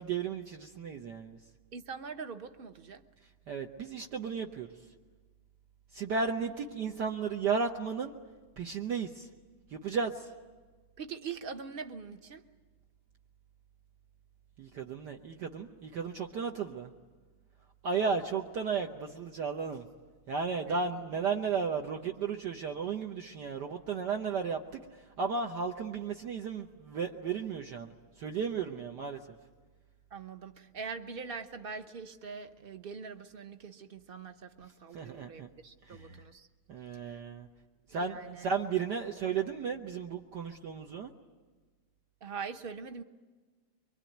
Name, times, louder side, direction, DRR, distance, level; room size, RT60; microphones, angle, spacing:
voice 1, 0.0-1.4 3.5-4.7 5.9-8.1 8.6-9.3 9.7-10.3 14.6-16.9 17.8-19.9 20.3-24.8 25.2-29.4 34.9-35.5 35.9-36.2 36.7-37.5 37.9-41.1, right 5 dB, 60° right, 2 dB, 1.5 m, -34 dB
voice 2, 1.7-3.0 6.4-6.5 11.0-12.4 20.7-20.9 30.1-36.5 37.1-37.2 38.0-38.5 42.2-43.0, right 5 dB, 40° right, 8 dB, 0.9 m, -43 dB
25.0 x 24.0 x 9.3 m, 1.3 s
omnidirectional pair, 2.2 m